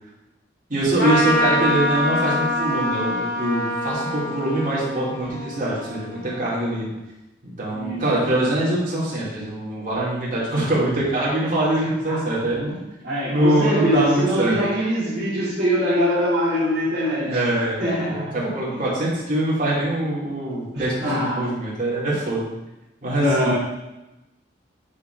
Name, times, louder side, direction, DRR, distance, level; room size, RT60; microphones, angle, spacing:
voice 1, 0.7-6.9 7.6-12.8 13.3-14.6 17.3-17.8 18.1-22.5 23.0-23.5, right 1 dB, 45° right, -7 dB, 2.8 m, -23 dB
Trumpet, 1.0-6.8, equal, 65° left, 2.0 m, -25 dB
voice 2, 7.7-8.2 12.1-12.4 12.7-17.4 17.8-18.4 18.7-18.8 20.7-21.6 23.2-23.6, equal, 60° right, -10 dB, 2.4 m, -23 dB
9.6 x 3.8 x 4.6 m, 0.96 s
head